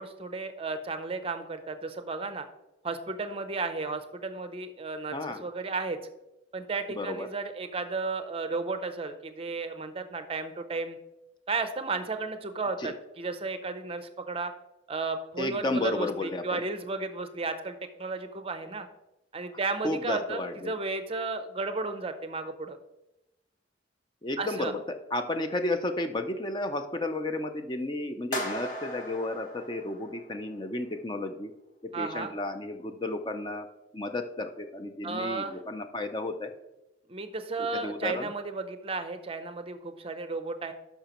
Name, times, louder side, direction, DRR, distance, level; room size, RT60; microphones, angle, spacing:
voice 1, 0.0-2.5 2.8-6.0 6.5-11.0 11.5-14.5 14.9-18.9 19.3-22.8 24.4-24.7 31.9-32.3 35.0-35.6 37.1-40.7, right 3 dB, 30° right, 9 dB, 0.5 m, -33 dB
voice 2, 5.1-5.4 6.9-7.3 12.8-12.9 15.4-16.6 19.8-20.7 24.2-31.5 31.8-33.7 33.9-36.5 37.7-38.3, left 2 dB, 25° left, 7 dB, 0.5 m, -32 dB
sound 1, 28.3-30.6, equal, 40° left, 1.4 m, -37 dB
12.0 x 5.6 x 3.0 m, 0.95 s
head